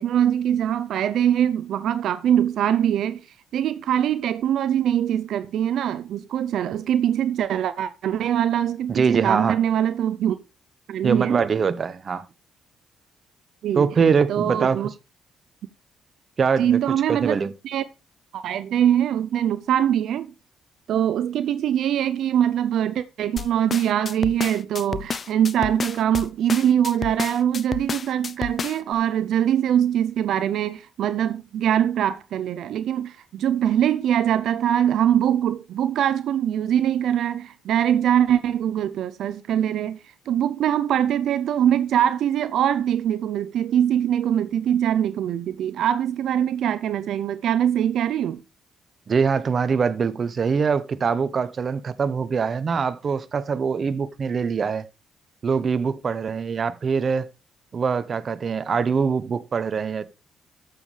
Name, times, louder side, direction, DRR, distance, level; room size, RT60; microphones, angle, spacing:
voice 1, 0.0-3.2 3.5-10.4 10.9-11.4 13.6-13.9 14.3-14.9 16.6-17.4 17.6-17.8 18.3-20.3 20.9-48.4, right 10 dB, 75° right, 0.5 m, -23 dB
voice 2, 8.9-9.6 11.0-12.3 13.7-14.8 16.4-17.5 49.1-54.8 55.4-57.3 57.7-60.0, right 5 dB, 45° right, 0.8 m, -23 dB
sound 1, 23.4-28.9, left 6 dB, 45° left, 0.5 m, -31 dB
13.0 x 7.2 x 3.3 m
cardioid pair, 90°, 0 cm